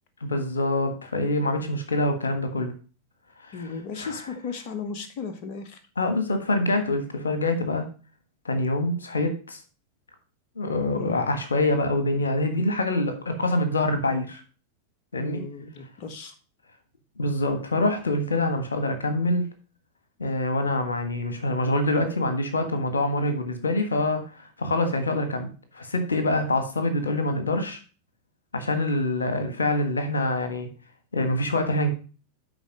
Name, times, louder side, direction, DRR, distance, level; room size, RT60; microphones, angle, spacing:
voice 1, 0.2-2.7 4.0-4.1 6.0-7.8 8.4-9.6 10.6-14.4 15.1-15.4 17.2-19.5 20.2-25.5 25.7-27.8 28.5-30.7 31.1-31.9, left 2 dB, 70° left, 8 dB, 1.5 m, -25 dB
voice 2, 3.5-5.8 11.0-11.2 15.2-16.3, left 5 dB, 40° left, 7 dB, 1.4 m, -35 dB
9.9 x 4.2 x 5.2 m, 0.36 s
figure-of-eight pair, 90°, 0 cm